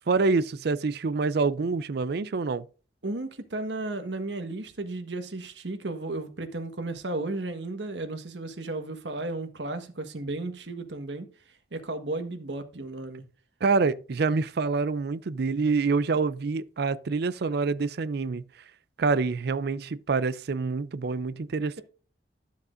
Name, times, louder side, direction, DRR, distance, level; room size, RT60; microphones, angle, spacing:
voice 1, 0.1-2.7 13.6-18.4 19.0-21.8, right 4 dB, 65° right, 0.5 m, -26 dB
voice 2, 3.0-11.3 11.7-13.2, right 2 dB, 90° right, 1.5 m, -34 dB
12.5 x 7.1 x 2.6 m
head